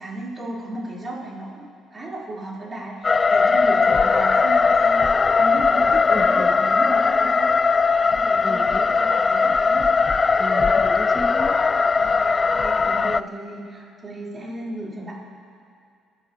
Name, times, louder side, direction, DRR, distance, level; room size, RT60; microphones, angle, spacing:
voice 1, 0.0-5.0 5.4-7.5 8.0-9.9 12.0-15.1, right 1 dB, 30° right, -5 dB, 4.3 m, -35 dB
sound 1, 3.0-13.2, left 4 dB, 35° left, 0.3 m, -19 dB
voice 2, 6.1-6.6 8.4-8.8 10.4-11.6, left 1 dB, 15° left, 0 dB, 2.4 m, -32 dB
23.5 x 11.5 x 3.1 m, 2.3 s
supercardioid pair, 60°, 0 cm